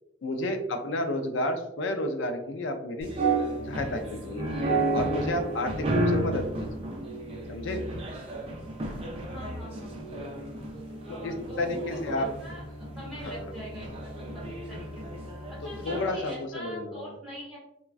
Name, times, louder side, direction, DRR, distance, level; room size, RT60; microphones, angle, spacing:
voice 1, 0.2-3.1 3.6-4.5 4.9-6.9 7.5-7.9 11.1-12.3 13.2-13.5 15.9-17.1, left 1 dB, 60° left, 6 dB, 0.4 m, -31 dB
sound 1, 3.0-16.3, right 2 dB, 30° right, 0.5 m, -32 dB
voice 2, 9.3-10.0 10.7-15.2 15.5-17.6, equal, ahead, -8 dB, 1.3 m, -43 dB
3.4 x 2.2 x 2.3 m, 0.82 s
head